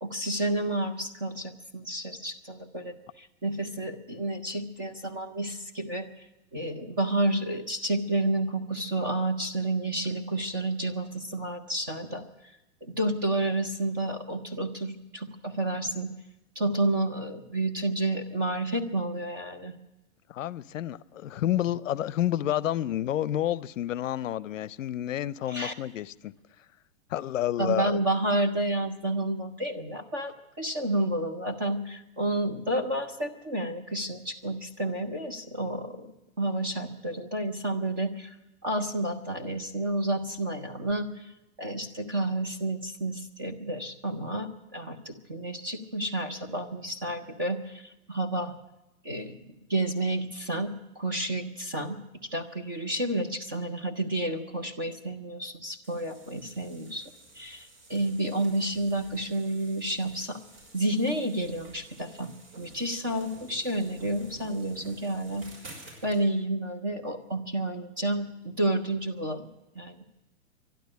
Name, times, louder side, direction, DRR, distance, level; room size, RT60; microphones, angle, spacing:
voice 1, 0.0-6.1 6.5-12.2 12.8-16.1 16.6-19.7 25.5-25.7 27.6-36.1 36.4-38.4 38.6-41.1 41.6-48.5 49.0-57.0 57.4-60.4 60.7-62.3 62.6-65.5 66.0-69.5 69.8-70.2, right 1 dB, 15° right, 0.5 m, -30 dB
voice 2, 20.3-26.3 27.1-28.0, left 12 dB, 70° left, 0.7 m, -29 dB
sound 1, 55.8-66.2, right 1 dB, 45° right, 6.2 m, -51 dB
12.0 x 12.0 x 9.3 m
hypercardioid pair, 170°, 41 cm